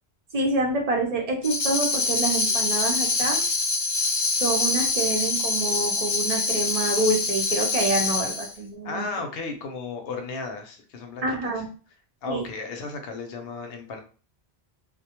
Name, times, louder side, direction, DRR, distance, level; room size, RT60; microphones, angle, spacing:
voice 1, 0.3-3.4 4.4-9.0 11.2-11.7 12.3-12.4, right 2 dB, 45° right, 1 dB, 0.6 m, -27 dB
Tambourine, 1.4-8.5, left 3 dB, 45° left, 0.5 m, -25 dB
voice 2, 8.8-11.5 12.2-14.0, left 4 dB, 70° left, 5 dB, 0.8 m, -34 dB
2.2 x 2.1 x 2.8 m, 0.37 s
omnidirectional pair, 1.1 m